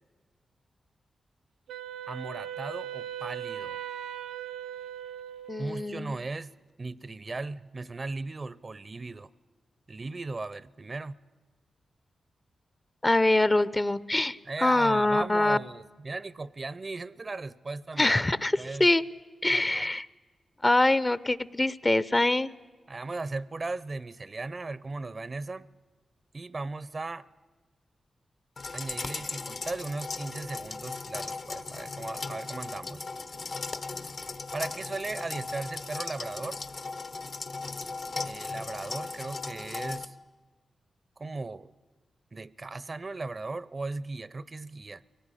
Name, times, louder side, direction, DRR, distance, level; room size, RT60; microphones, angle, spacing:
Wind instrument woodwind instrument, 1.7-6.0, right 10 dB, 90° right, 0.6 m, -39 dB
voice 1, 2.1-3.8 5.6-6.5 6.8-9.3 9.9-11.2 14.5-18.2 18.5-18.9 19.5-19.9 22.9-25.7 26.3-27.3 28.7-33.1 34.5-36.6 38.2-40.2 41.2-41.7 42.3-45.0, right 3 dB, 40° right, 19 dB, 0.6 m, -37 dB
voice 2, 5.5-6.1 13.0-15.6 18.0-19.0 19.4-20.1 20.6-22.5, left 2 dB, 25° left, 17 dB, 0.7 m, -24 dB
sound 1, 28.6-40.1, left 3 dB, 55° left, 1.1 m, -37 dB
23.0 x 18.0 x 10.0 m, 1.4 s
cardioid pair, 60°, 0 cm